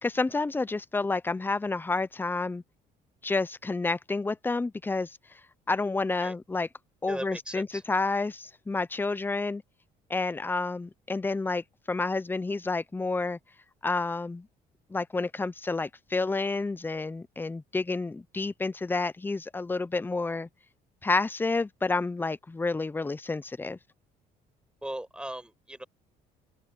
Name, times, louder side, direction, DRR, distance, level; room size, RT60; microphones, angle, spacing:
voice 1, 0.0-2.6 3.2-5.2 5.7-6.7 7.0-9.6 10.1-13.4 13.8-14.5 14.9-20.5 21.0-23.8, left 3 dB, 10° left, 0.6 m, -29 dB
voice 2, 7.1-7.8 24.8-25.8, right 1 dB, 5° right, 5.3 m, -38 dB
cardioid pair, 110°, 17 cm